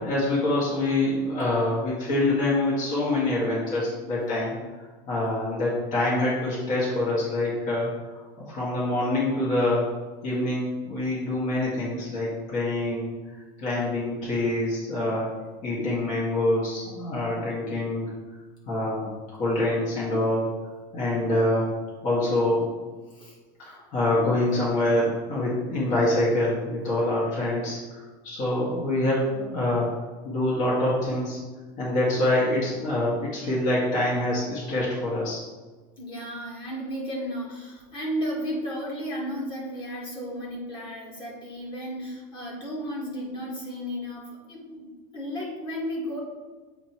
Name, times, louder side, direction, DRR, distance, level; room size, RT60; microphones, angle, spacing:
voice 1, 0.0-4.6 5.1-9.9 10.2-13.1 13.6-15.3 15.6-18.1 18.7-19.1 19.4-20.6 20.9-21.8 22.0-22.7 23.6-29.9 30.2-31.4 31.8-35.4, left 1 dB, 40° left, -6 dB, 1.8 m, -25 dB
voice 2, 36.0-46.2, equal, 25° left, -4 dB, 2.0 m, -34 dB
7.8 x 3.1 x 4.6 m, 1.3 s
supercardioid pair, 155°, 19 cm